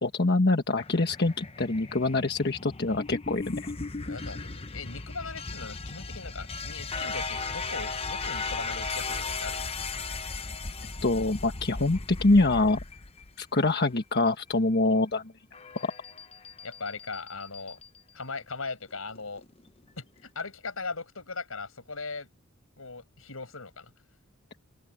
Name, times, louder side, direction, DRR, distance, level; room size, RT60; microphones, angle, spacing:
voice 1, 0.0-3.7 11.0-12.8 13.4-15.2 15.8-15.9, left 2 dB, 50° left, 1.3 m, -25 dB
sound 1, 0.8-13.8 15.5-18.0 19.2-19.7, left 4 dB, 25° left, 0.8 m, -37 dB
voice 2, 4.0-9.7 16.6-17.8 18.1-19.4 20.0-22.3 22.8-23.9, left 4 dB, 70° left, 6.1 m, -39 dB
open air
head